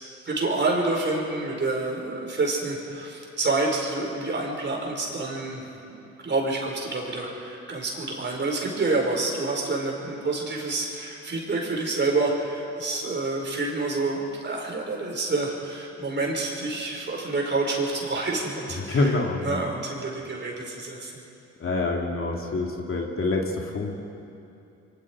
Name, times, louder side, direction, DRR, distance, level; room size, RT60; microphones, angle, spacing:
voice 1, 0.0-19.1 19.4-21.1, right 3 dB, 35° right, -1 dB, 5.5 m, -28 dB
voice 2, 18.8-19.6 21.6-24.0, left 3 dB, 45° left, 0 dB, 2.8 m, -26 dB
27.5 x 23.5 x 4.9 m, 2.8 s
cardioid pair, 90°, 30 cm